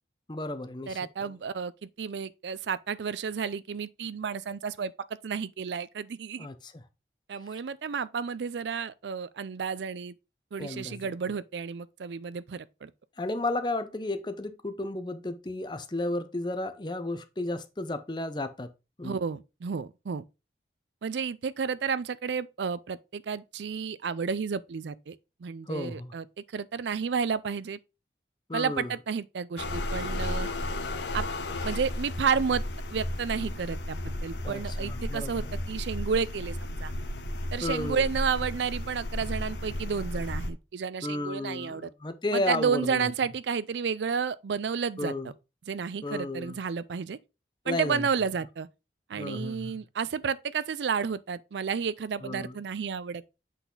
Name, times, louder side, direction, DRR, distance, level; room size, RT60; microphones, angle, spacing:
voice 1, 0.3-1.3 6.4-6.7 7.5-7.6 10.6-11.0 13.2-18.7 19.0-19.2 25.7-26.1 28.5-28.9 34.4-35.5 37.6-38.1 41.0-43.1 45.0-45.3 46.0-46.6 47.6-48.1 49.2-49.7 52.2-52.5, left 2 dB, 25° left, 0.6 m, -33 dB
voice 2, 0.9-4.9 5.2-6.5 7.3-10.1 10.5-12.9 19.0-20.2 21.0-26.2 26.5-27.8 28.5-30.5 31.1-31.3 31.6-32.6 32.9-36.9 37.5-41.9 42.3-45.1 45.7-47.2 47.7-48.7 49.1-53.2, right 6 dB, 85° right, 0.4 m, -31 dB
sound 1, 29.6-40.5, left 1 dB, 85° left, 0.9 m, -34 dB
8.2 x 4.0 x 3.9 m
head